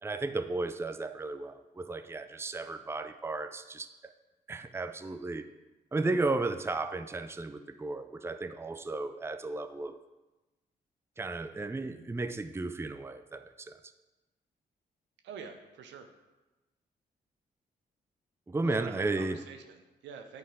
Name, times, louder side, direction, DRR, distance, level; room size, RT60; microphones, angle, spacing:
voice 1, 0.0-4.1 4.5-5.5 5.9-10.0 11.2-13.8 18.5-19.4, right 3 dB, 15° right, 10 dB, 0.5 m, -34 dB
voice 2, 15.2-16.1 18.6-20.4, right 6 dB, 75° right, 6 dB, 0.8 m, -46 dB
9.2 x 4.0 x 4.9 m, 1.1 s
hypercardioid pair, 40°, 19 cm